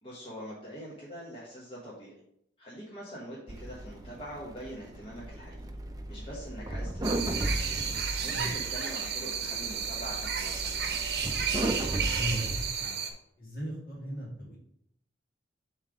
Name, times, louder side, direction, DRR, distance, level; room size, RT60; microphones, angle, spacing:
voice 1, 0.0-2.1 2.6-5.7 6.1-7.5 7.8-11.0, equal, 30° left, -6 dB, 1.2 m, -44 dB
sound 1, 3.5-12.7, right 1 dB, 20° right, 0.5 m, -36 dB
sound 2, 7.0-13.1, right 7 dB, 60° right, 0.8 m, -32 dB
voice 2, 12.1-13.0 13.4-14.6, equal, 50° left, -2 dB, 1.9 m, -37 dB
7.3 x 3.3 x 4.9 m, 0.73 s
head